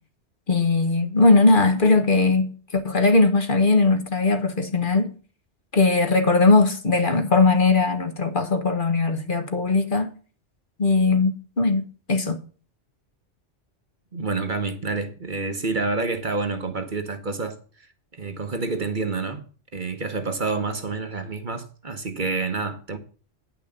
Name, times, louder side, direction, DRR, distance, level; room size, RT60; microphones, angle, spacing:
voice 1, 0.5-5.1 5.7-10.1 10.8-12.4, left 3 dB, 45° left, 1.3 m, -19 dB
voice 2, 14.1-17.6 18.2-19.4 19.7-23.0, right 3 dB, 45° right, 1.2 m, -28 dB
10.0 x 6.0 x 6.8 m
omnidirectional pair, 1.2 m